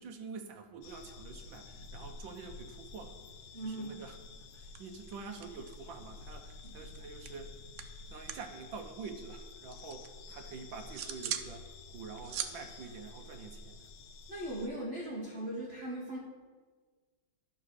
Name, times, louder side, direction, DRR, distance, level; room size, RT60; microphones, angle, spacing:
voice 1, 0.0-3.2 3.6-4.2 4.5-7.6 8.1-13.9, right 4 dB, 70° right, 6 dB, 1.5 m, -47 dB
sound 1, 0.8-14.7, left 3 dB, 85° left, 1.6 m, -50 dB
voice 2, 3.5-4.0 6.6-6.9 14.3-16.2, right 1 dB, 35° right, -4 dB, 1.2 m, -39 dB
sound 2, 4.3-4.5 4.7-6.0 6.2-8.5 8.8-10.1 10.5-11.5 11.9-14.0, right 10 dB, 85° right, 1.5 m, -43 dB
11.5 x 3.9 x 6.2 m, 1.4 s
omnidirectional pair, 2.3 m